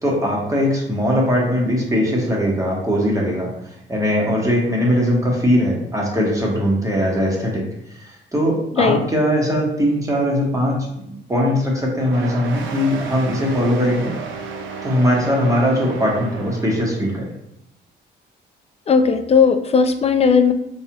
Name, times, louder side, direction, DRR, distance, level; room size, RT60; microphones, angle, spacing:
voice 1, 0.0-3.5 3.9-7.6 8.0-14.1 14.8-17.2, equal, 15° right, -3 dB, 1.1 m, -20 dB
sound 1, 12.0-17.1, right 4 dB, 80° right, 0.5 m, -32 dB
voice 2, 18.9-20.5, left 5 dB, 30° left, 8 dB, 0.3 m, -16 dB
4.0 x 2.4 x 2.9 m, 0.77 s
cardioid pair, 90°, 20 cm